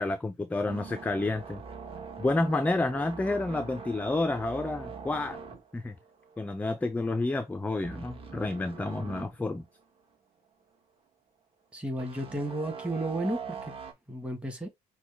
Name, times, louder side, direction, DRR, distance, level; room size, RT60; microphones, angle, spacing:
voice 1, 0.0-1.6 2.2-5.4 5.7-5.9 6.4-9.6, left 2 dB, 10° left, 0.4 m, -30 dB
sound 1, 0.7-6.8 7.0-7.3 7.8-9.3 9.8-9.9 12.0-13.9, right 5 dB, 35° right, 1.3 m, -43 dB
voice 2, 11.7-13.6 14.1-14.7, right 1 dB, 5° right, 1.5 m, -33 dB
6.0 x 2.2 x 3.5 m
cardioid pair, 110°, 17 cm